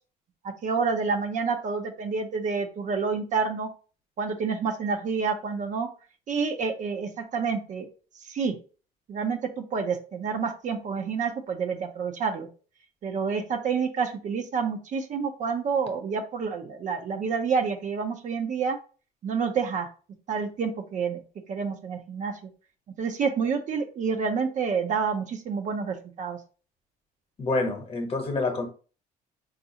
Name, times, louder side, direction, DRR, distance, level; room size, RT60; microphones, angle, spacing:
voice 1, 0.6-3.7 4.2-5.9 6.3-7.9 8.2-8.6 9.1-12.5 13.0-18.8 19.2-19.9 20.3-21.2 21.5-22.4 23.0-26.4, right 5 dB, 50° right, 0.6 m, -28 dB
voice 2, 27.4-28.7, left 3 dB, 35° left, 0.9 m, -27 dB
4.0 x 2.5 x 2.7 m
cardioid pair, 110°, 17 cm